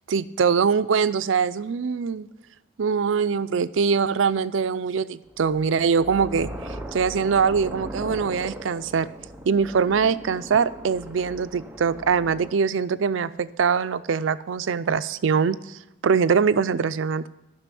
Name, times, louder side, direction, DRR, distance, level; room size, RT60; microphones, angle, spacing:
voice 1, 0.1-2.3 2.8-9.1 9.5-17.3, right 6 dB, 85° right, 14 dB, 0.4 m, -23 dB
sound 1, 5.3-12.5, right 1 dB, 10° right, 0.7 m, -38 dB
11.5 x 6.0 x 7.6 m, 0.89 s
head